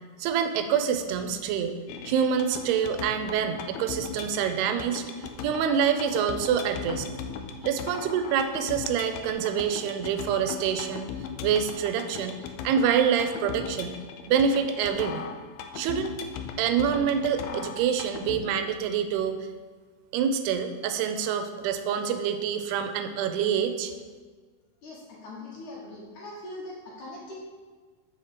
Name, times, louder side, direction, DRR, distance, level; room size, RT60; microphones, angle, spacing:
voice 1, 0.2-1.8 2.1-5.0 5.4-7.1 7.6-11.1 11.4-12.4 12.6-14.0 14.3-15.3 15.8-16.1 16.6-19.5 20.1-23.9, right 7 dB, 85° right, 8 dB, 2.6 m, -26 dB
sound 1, 1.9-18.4, left 6 dB, 80° left, 2.2 m, -38 dB
voice 2, 24.8-27.4, left 2 dB, 60° left, -4 dB, 2.3 m, -41 dB
5.9 x 5.7 x 6.6 m, 1.5 s
omnidirectional pair, 4.6 m